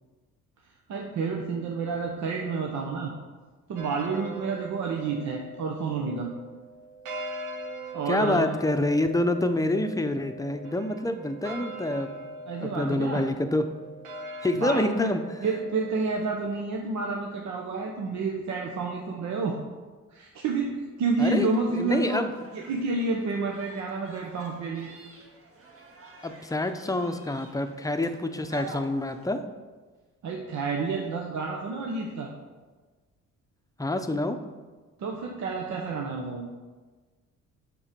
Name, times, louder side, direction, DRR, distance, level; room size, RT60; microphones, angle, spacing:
voice 1, 0.9-3.1 3.7-6.3 7.9-8.5 12.5-13.2 14.5-15.1 15.4-19.6 20.1-22.2 22.5-24.9 30.2-32.3 35.0-36.5, right 4 dB, 70° right, 0 dB, 1.0 m, -29 dB
sound 1, 3.8-16.3, right 1 dB, 85° right, 1.2 m, -41 dB
voice 2, 8.1-12.1 12.6-13.6 14.4-15.2 21.2-22.3 26.2-29.4 33.8-34.4, left 1 dB, 10° left, 8 dB, 0.7 m, -27 dB
sound 2, 21.4-29.2, right 2 dB, 50° right, 1.7 m, -49 dB
7.2 x 6.2 x 5.2 m, 1.3 s
cardioid pair, 90°, 30 cm